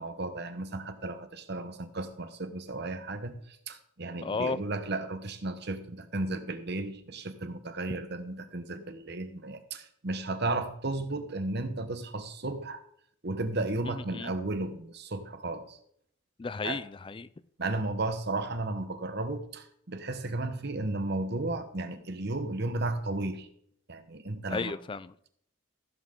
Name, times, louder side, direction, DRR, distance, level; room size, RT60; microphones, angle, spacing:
voice 1, 0.0-12.8 13.2-15.8 16.6-16.8 17.6-23.5 23.9-24.7, right 2 dB, 55° right, 1.1 m, -34 dB
voice 2, 4.2-4.6 13.9-14.3 16.4-17.3 24.5-25.3, left 4 dB, 25° left, 0.3 m, -34 dB
15.5 x 7.2 x 3.7 m
head